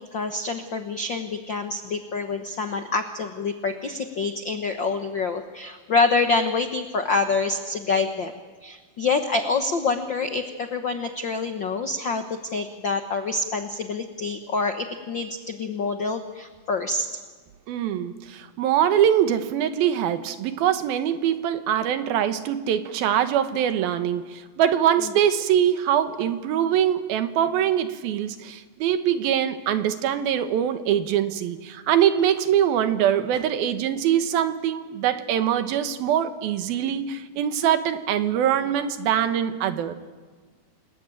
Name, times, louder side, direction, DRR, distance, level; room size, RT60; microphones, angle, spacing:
voice 1, 0.0-8.3 8.6-12.2 12.5-17.1, left 3 dB, 75° left, 7 dB, 1.0 m, -26 dB
voice 2, 17.7-39.9, right 10 dB, 85° right, 10 dB, 3.1 m, -23 dB
28.5 x 20.0 x 9.1 m, 1.5 s
omnidirectional pair, 4.2 m